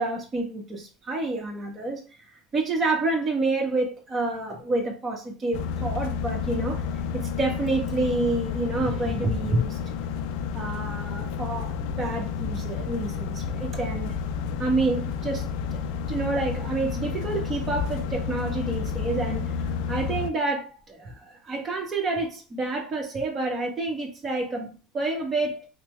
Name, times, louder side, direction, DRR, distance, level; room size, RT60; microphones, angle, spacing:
voice 1, 0.0-2.0 2.5-6.8 7.1-9.8 10.5-14.1 14.6-15.4 15.7-15.8 16.1-19.5 19.9-25.7, right 2 dB, 30° right, 1.2 m, -28 dB
sound 1, 5.5-20.3, left 6 dB, 70° left, 0.3 m, -30 dB
3.4 x 2.2 x 3.1 m
supercardioid pair, 90°, 0 cm